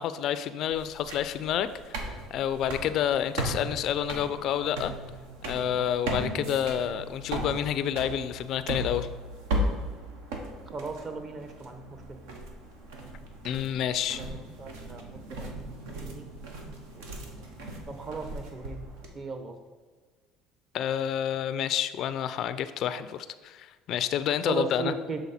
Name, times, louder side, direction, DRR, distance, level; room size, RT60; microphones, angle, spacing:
voice 1, 0.0-4.9 5.4-9.1 13.4-14.2 20.7-24.9, left 10 dB, 60° left, 13 dB, 0.3 m, -29 dB
sound 1, 0.6-19.1, right 1 dB, 85° right, 0.9 m, -37 dB
voice 2, 10.7-12.2 14.2-15.0 15.3-16.3 16.7-17.5 17.9-18.8 19.1-19.6 24.4-25.2, right 4 dB, 40° right, 6 dB, 0.9 m, -37 dB
7.2 x 3.7 x 4.1 m, 1.4 s
supercardioid pair, 90°, 0 cm